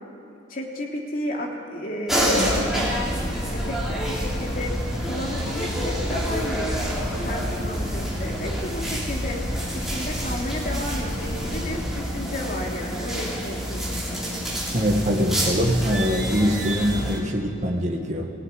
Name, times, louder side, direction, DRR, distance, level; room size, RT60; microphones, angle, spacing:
voice 1, 0.5-3.1 3.5-4.7 5.0-6.7 7.2-9.4 9.7-14.2, left 1 dB, 45° left, -1 dB, 3.2 m, -33 dB
sound 1, 2.1-17.2, equal, ahead, 3.4 m, -28 dB
sound 2, 3.0-11.8, equal, 75° left, 3.3 m, -32 dB
voice 2, 14.7-18.3, equal, 40° right, 1 dB, 1.8 m, -23 dB
18.0 x 17.5 x 10.0 m, 2.9 s
head